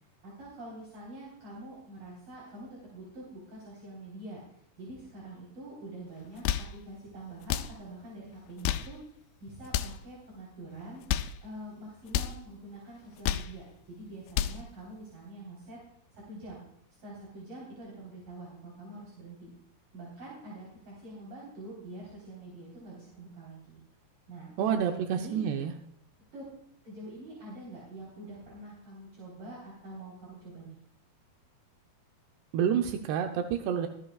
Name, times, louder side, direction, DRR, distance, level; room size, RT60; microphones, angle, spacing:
voice 1, 0.2-4.4 4.8-11.0 11.4-15.8 16.1-16.6 17.0-19.5 19.9-23.8 24.3-25.4 26.3-26.4 26.8-30.8, right 1 dB, 55° right, -6 dB, 5.4 m, -45 dB
sound 1, 6.2-6.8 7.4-7.8 8.5-9.0 9.6-10.0 10.9-11.4 12.1-12.4 13.0-13.6 14.1-14.6, left 11 dB, 80° left, 2.2 m, -31 dB
voice 2, 24.6-25.7 32.5-33.9, right 8 dB, 85° right, 5 dB, 2.9 m, -28 dB
24.0 x 9.1 x 2.4 m, 0.70 s
omnidirectional pair, 4.7 m